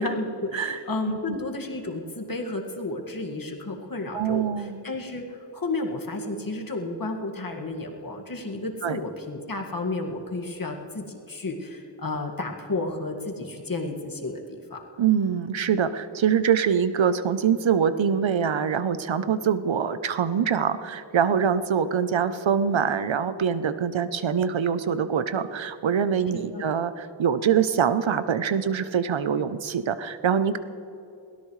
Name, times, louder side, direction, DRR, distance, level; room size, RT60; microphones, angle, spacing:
voice 1, 0.0-5.2 5.5-14.8 26.3-26.6, left 2 dB, 45° left, 2 dB, 1.9 m, -32 dB
voice 2, 0.5-1.4 4.1-4.9 8.8-9.0 15.0-30.6, right 7 dB, 80° right, 12 dB, 0.8 m, -24 dB
22.0 x 17.5 x 3.2 m, 2.9 s
wide cardioid pair, 90°, 46 cm